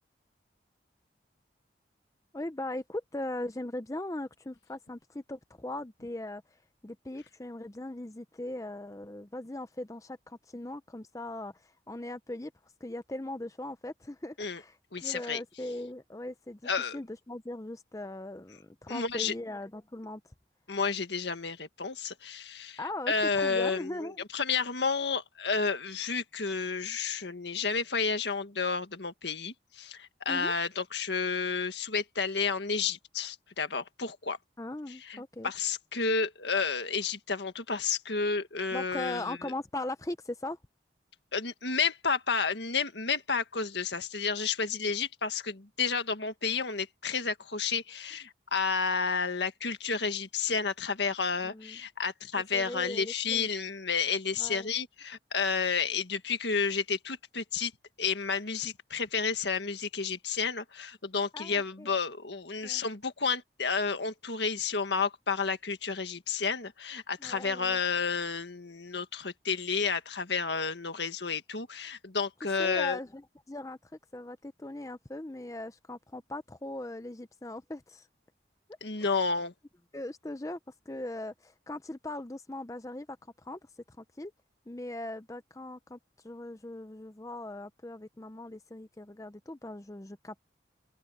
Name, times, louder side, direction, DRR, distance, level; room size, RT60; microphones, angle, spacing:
voice 1, 2.3-16.6 16.9-20.3 22.8-24.2 30.3-30.5 34.6-35.5 38.7-40.6 51.4-51.8 52.5-53.5 54.4-54.7 61.3-61.9 62.6-62.8 67.2-67.8 72.6-73.2 73.5-78.1 79.0-79.2 79.9-80.6 80.9-83.6 83.9-84.3 84.7-90.4, left 1 dB, 15° left, 0.6 m, -39 dB
voice 2, 14.9-15.4 16.6-17.0 18.9-19.3 20.7-22.8 23.1-34.4 34.9-39.4 41.3-57.7 58.0-73.0 78.8-79.5, left 5 dB, 75° left, 1.8 m, -31 dB
open air
head